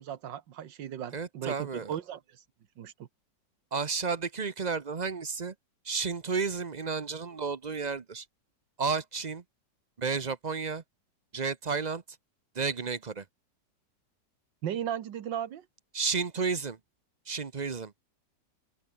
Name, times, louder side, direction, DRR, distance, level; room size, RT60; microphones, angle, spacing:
voice 1, 0.0-2.2 2.8-3.1 14.6-15.6, right 10 dB, 80° right, 1.8 m, -36 dB
voice 2, 1.1-2.0 3.7-5.5 5.8-8.2 8.8-9.4 10.0-10.8 11.3-12.0 12.5-13.2 15.9-16.8 17.3-17.9, right 5 dB, 35° right, 0.7 m, -32 dB
open air
omnidirectional pair, 2.0 m